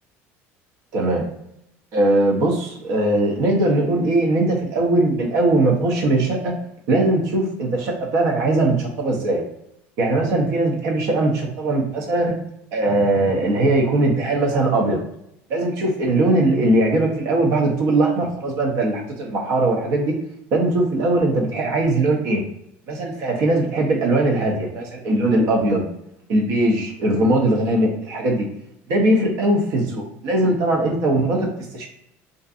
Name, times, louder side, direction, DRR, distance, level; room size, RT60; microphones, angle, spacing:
voice 1, 0.9-1.3 1.9-6.5 6.9-9.4 10.0-12.4 12.7-15.0 15.5-20.2 20.5-22.4 22.9-25.9 26.3-28.5 28.9-31.9, right 2 dB, 65° right, 0 dB, 0.6 m, -20 dB
2.5 x 2.4 x 2.4 m, 0.79 s
supercardioid pair, 115°, 6 cm